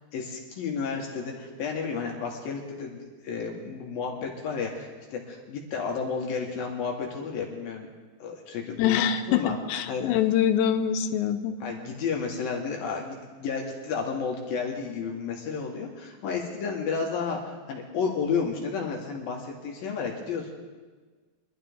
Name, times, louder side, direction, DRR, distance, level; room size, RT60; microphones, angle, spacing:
voice 1, 0.1-7.9 8.2-9.0 9.3-9.5 9.9-10.1 11.6-20.5, left 5 dB, 65° left, 0 dB, 2.8 m, -32 dB
voice 2, 8.8-11.6, left 9 dB, 90° left, 9 dB, 3.0 m, -24 dB
23.0 x 12.5 x 3.6 m, 1.4 s
omnidirectional pair, 5.0 m